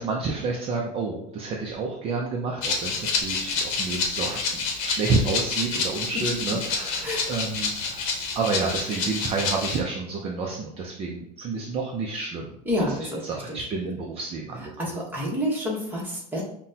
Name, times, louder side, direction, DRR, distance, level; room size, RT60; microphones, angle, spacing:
voice 1, 0.0-14.9, right 4 dB, 30° right, 0 dB, 0.4 m, -30 dB
Rattle (instrument), 2.6-9.8, left 4 dB, 70° left, 0.8 m, -28 dB
voice 2, 12.7-13.2 13.5-13.6 14.8-16.4, equal, 10° right, -4 dB, 1.0 m, -28 dB
5.7 x 2.2 x 2.7 m, 0.72 s
cardioid pair, 155°, 19 cm